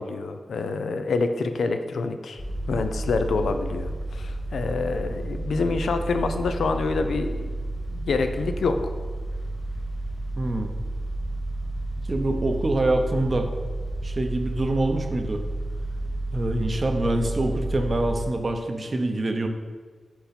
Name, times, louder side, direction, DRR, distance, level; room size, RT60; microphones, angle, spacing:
voice 1, 0.0-2.4 2.7-7.5 7.9-8.8, left 4 dB, 85° left, 7 dB, 0.4 m, -27 dB
sound 1, 2.4-18.3, right 2 dB, 25° left, 1.4 m, -31 dB
voice 2, 10.4-10.7 12.1-13.5 14.0-15.4 16.3-19.5, right 1 dB, 45° right, 5 dB, 0.7 m, -25 dB
4.6 x 4.3 x 5.2 m, 1.5 s
cardioid pair, 55°, 0 cm